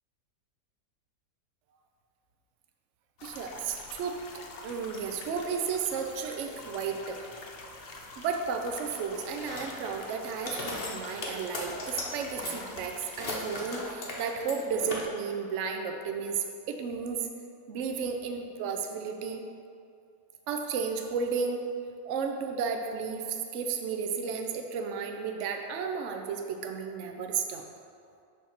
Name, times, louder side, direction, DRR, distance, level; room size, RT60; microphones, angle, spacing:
sound 1, 3.2-13.9, left 2 dB, 85° left, 0.5 m, -46 dB
voice 1, 3.2-4.2 4.6-7.2 8.2-17.3 17.7-19.4 20.5-21.7 22.0-27.6, right 6 dB, 75° right, 4 dB, 0.6 m, -33 dB
sound 2, 9.3-10.0 10.4-12.1 12.4-15.0, left 2 dB, 45° left, 0.8 m, -38 dB
6.3 x 3.5 x 5.8 m, 2.4 s
omnidirectional pair, 1.9 m